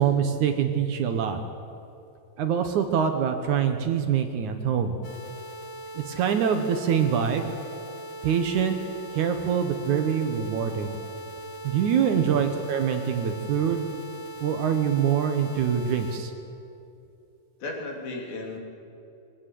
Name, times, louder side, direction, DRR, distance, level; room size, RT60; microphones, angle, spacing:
voice 1, 0.0-1.4 2.4-5.0 6.0-7.5 8.2-8.8 9.1-11.0 11.6-13.9 14.4-16.3, right 8 dB, 65° right, 7 dB, 2.2 m, -24 dB
sound 1, 5.0-16.2, right 1 dB, 35° left, 1.1 m, -40 dB
voice 2, 12.1-12.4 17.6-18.6, left 3 dB, 80° left, 1 dB, 4.6 m, -35 dB
23.0 x 16.5 x 7.7 m, 2.7 s
omnidirectional pair, 4.2 m